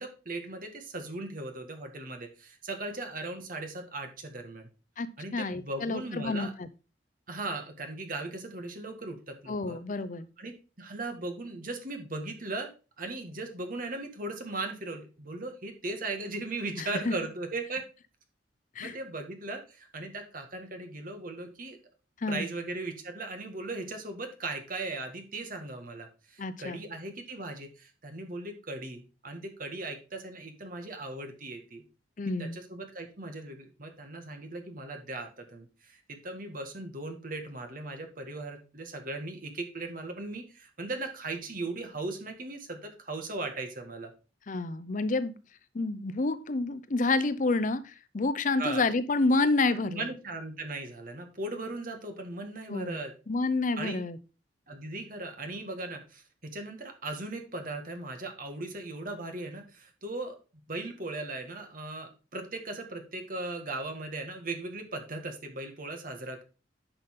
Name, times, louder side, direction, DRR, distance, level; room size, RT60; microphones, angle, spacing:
voice 1, 0.0-4.7 5.2-6.5 7.3-9.8 10.4-12.7 13.0-17.8 18.8-21.8 22.3-31.8 32.4-44.1 48.6-48.8 49.7-53.1 53.8-54.0 54.7-60.4 60.7-66.4, right 2 dB, 50° right, 5 dB, 1.8 m, -38 dB
voice 2, 5.3-6.7 9.5-10.3 16.8-17.1 18.8-19.0 22.2-22.5 26.4-26.8 32.2-32.6 44.5-45.3 45.7-50.0 52.7-53.0 53.3-54.2, left 3 dB, 45° left, 14 dB, 0.6 m, -29 dB
10.0 x 5.8 x 3.7 m, 0.32 s
head